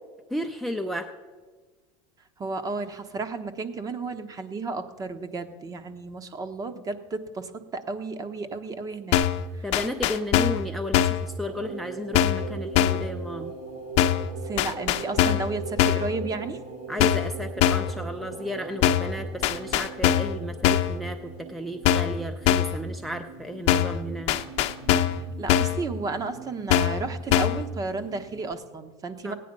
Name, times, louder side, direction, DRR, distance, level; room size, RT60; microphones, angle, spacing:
voice 1, 0.3-1.1 9.6-13.5 16.9-24.4 29.2-29.3, equal, ahead, 7 dB, 0.6 m, -33 dB
voice 2, 2.4-9.2 9.5-9.6 14.4-16.6 25.1-29.3, right 3 dB, 25° right, 9 dB, 1.1 m, -33 dB
sound 1, 9.1-9.4 9.7-10.6 10.9-11.3 12.1-12.5 12.7-13.1 14.0-14.3 14.6-15.5 15.8-16.1 17.0-17.3 17.6-17.9 18.8-19.1 19.4-20.4 20.6-21.0 21.8-22.2 22.5-22.8 23.7-24.0 24.3-25.2 25.5-25.8 26.7-27.0 27.3-27.6, left 11 dB, 55° left, 0.8 m, -22 dB
sound 2, 11.4-28.5, right 4 dB, 65° right, 1.7 m, -42 dB
16.5 x 9.4 x 5.3 m, 1.4 s
supercardioid pair, 120°, 14 cm